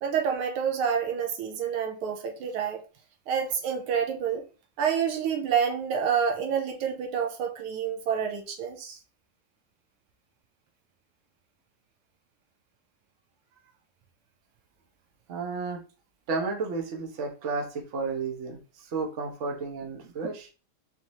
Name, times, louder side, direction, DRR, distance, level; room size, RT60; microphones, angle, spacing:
voice 1, 0.0-2.8 3.3-4.4 4.8-9.0, right 7 dB, 80° right, 1.6 m, -28 dB
voice 2, 15.3-15.8 16.3-20.5, right 4 dB, 50° right, 0.9 m, -32 dB
5.1 x 2.7 x 3.0 m
omnidirectional pair, 2.4 m